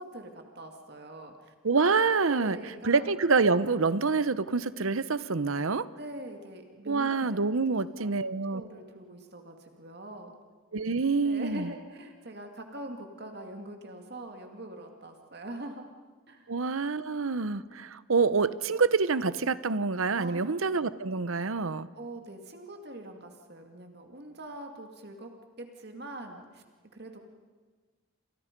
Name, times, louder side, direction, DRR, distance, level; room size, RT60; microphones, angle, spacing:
voice 1, 0.0-1.5 2.3-3.1 6.0-7.5 8.0-8.1 8.5-10.3 11.2-15.8 16.3-16.5 20.1-20.6 22.0-25.3 25.6-26.6 26.9-27.2, right 1 dB, 50° right, 4 dB, 2.2 m, -43 dB
voice 2, 1.6-5.9 6.9-8.6 10.7-11.7 16.5-21.9, right 4 dB, 80° right, 15 dB, 0.9 m, -27 dB
30.0 x 26.5 x 5.3 m, 1.4 s
head